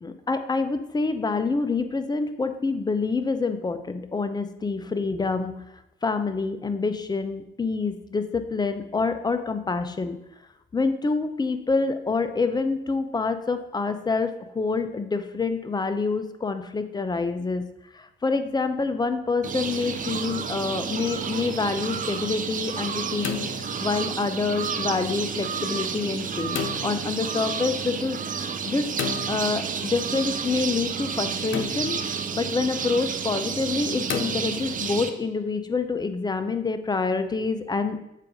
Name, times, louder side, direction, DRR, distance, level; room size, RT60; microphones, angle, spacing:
voice 1, 0.0-5.6 6.0-10.2 10.7-17.6 17.9-23.4 23.8-28.8 29.3-38.0, left 4 dB, 20° left, 9 dB, 0.5 m, -27 dB
sound 1, 19.4-35.1, right 6 dB, 45° right, 0.5 m, -30 dB
sound 2, 19.8-20.4 23.0-24.2 26.5-27.1 29.0-29.9 31.5-32.2 34.1-35.0, left 7 dB, 75° left, 0.6 m, -34 dB
7.5 x 2.6 x 4.9 m, 0.86 s
cardioid pair, 90°, 20 cm